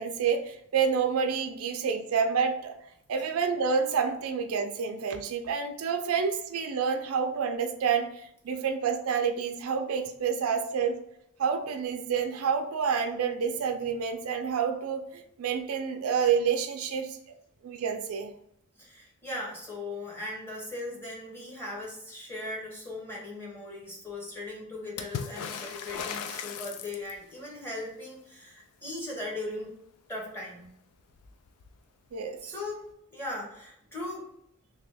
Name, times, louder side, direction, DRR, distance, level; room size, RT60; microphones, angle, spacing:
voice 1, 0.0-2.7 3.1-11.0 11.4-17.2 17.6-18.3 32.1-32.4, right 6 dB, 75° right, 6 dB, 0.4 m, -28 dB
voice 2, 18.8-29.7 30.1-30.7 32.4-34.3, left 2 dB, 10° left, -3 dB, 1.1 m, -38 dB
Water / Splash splatter, 25.0-27.4 30.6-30.7 31.0-31.8 32.9-33.0, left 6 dB, 90° left, 0.4 m, -37 dB
3.0 x 2.8 x 3.3 m, 0.73 s
head